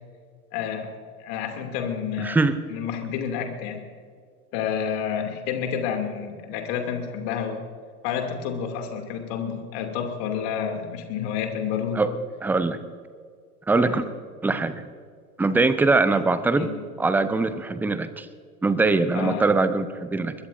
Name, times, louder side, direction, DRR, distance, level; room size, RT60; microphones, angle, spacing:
voice 1, 0.5-0.9 1.2-2.4 2.7-3.8 4.5-7.6 8.0-12.0 13.8-14.0 16.1-16.2 16.5-16.8 19.1-19.5, left 8 dB, 45° left, 4 dB, 2.8 m, -29 dB
voice 2, 2.2-2.6 12.0-12.1 12.4-12.8 13.7-14.0 14.4-14.9 15.4-16.7 17.0-18.3 18.6-20.3, right 3 dB, 5° right, 13 dB, 0.6 m, -22 dB
22.5 x 20.5 x 2.7 m, 2.1 s
figure-of-eight pair, 90°, 45 cm